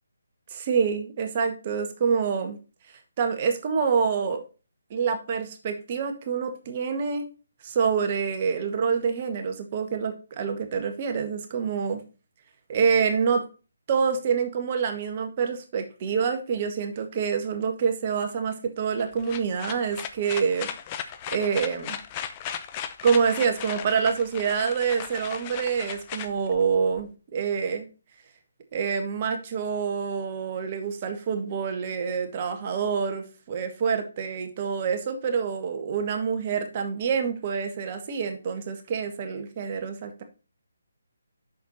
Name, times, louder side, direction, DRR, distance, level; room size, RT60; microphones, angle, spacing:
voice 1, 0.5-2.6 2.9-4.4 4.9-7.2 7.6-12.0 12.7-13.4 13.9-20.7 21.3-22.0 23.0-27.9 28.7-40.2, right 6 dB, 35° right, 5 dB, 1.6 m, -26 dB
sound 1, 19.0-27.0, left 9 dB, 25° left, 0.8 m, -36 dB
7.8 x 6.6 x 4.2 m, 0.33 s
figure-of-eight pair, 150°, 0 cm